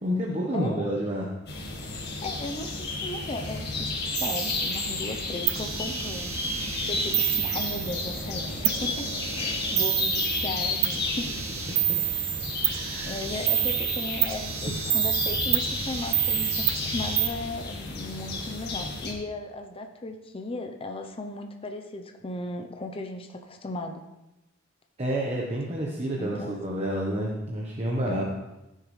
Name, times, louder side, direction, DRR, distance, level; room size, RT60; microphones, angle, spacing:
voice 1, 0.0-1.3 12.6-13.2 25.0-28.2, equal, 35° right, -2 dB, 1.1 m, -29 dB
voice 2, 0.5-0.9 2.2-11.3 13.0-16.7 16.9-24.0 26.2-26.6 28.1-28.2, left 2 dB, 30° left, 5 dB, 0.7 m, -36 dB
sound 1, 1.5-19.1, left 3 dB, 55° left, 1.7 m, -32 dB
sound 2, 4.1-5.0 5.5-8.3 8.6-17.3, right 14 dB, 75° right, 0.6 m, -29 dB
15.0 x 6.6 x 3.2 m, 0.96 s
head